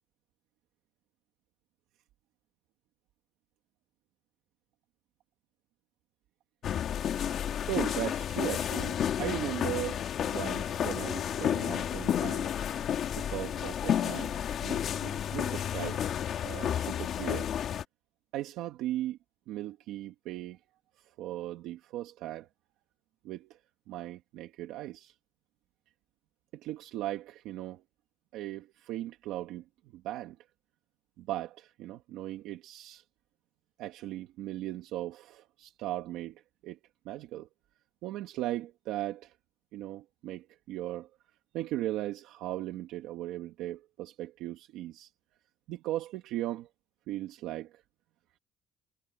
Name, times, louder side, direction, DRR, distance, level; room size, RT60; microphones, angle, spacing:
sound 1, 6.6-17.8, left 9 dB, 45° left, 2.2 m, -31 dB
voice 1, 7.7-12.5 13.1-14.3 14.6-17.5 18.3-19.2 19.5-20.6 21.2-22.5 23.2-23.5 23.9-25.1 26.5-27.8 28.3-29.6 29.9-30.3 31.2-33.0 33.8-36.8 37.0-37.5 38.0-39.3 39.7-41.1 41.5-45.1 45.7-46.7 47.1-47.7, right 14 dB, 85° right, 1.6 m, -38 dB
sound 2, 10.5-15.7, left 3 dB, 15° left, 3.5 m, -51 dB
cardioid pair, 170°, 0 cm